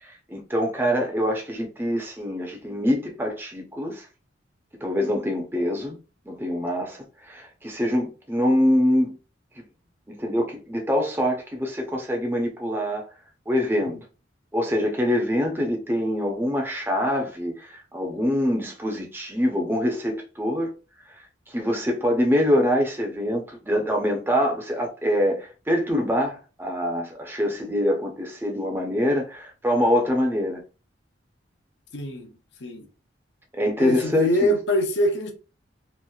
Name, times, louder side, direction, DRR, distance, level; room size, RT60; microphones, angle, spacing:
voice 1, 0.0-4.1 4.8-6.0 6.3-9.2 9.6-9.7 10.1-13.0 13.5-14.0 14.5-20.7 21.5-30.6 33.5-34.5, equal, 10° right, 0.5 m, -24 dB
voice 2, 31.9-32.3 32.6-32.9 33.8-35.3, equal, 65° left, 0.6 m, -24 dB
3.0 x 2.5 x 2.3 m
head